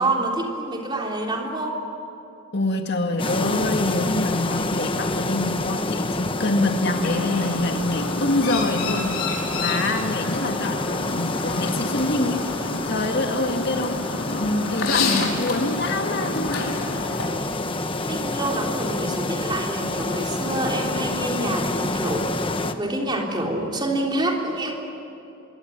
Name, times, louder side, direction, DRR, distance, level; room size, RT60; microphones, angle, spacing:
voice 1, 0.0-1.8 18.0-24.7, right 1 dB, 20° right, 0 dB, 3.5 m, -27 dB
voice 2, 2.5-16.8, left 2 dB, 50° left, 4 dB, 2.1 m, -26 dB
sound 1, 3.2-22.7, left 2 dB, 25° left, 1.2 m, -28 dB
Chirp tweet, 6.8-17.3, left 3 dB, 75° left, 4.8 m, -30 dB
25.5 x 23.0 x 9.9 m, 2.8 s
head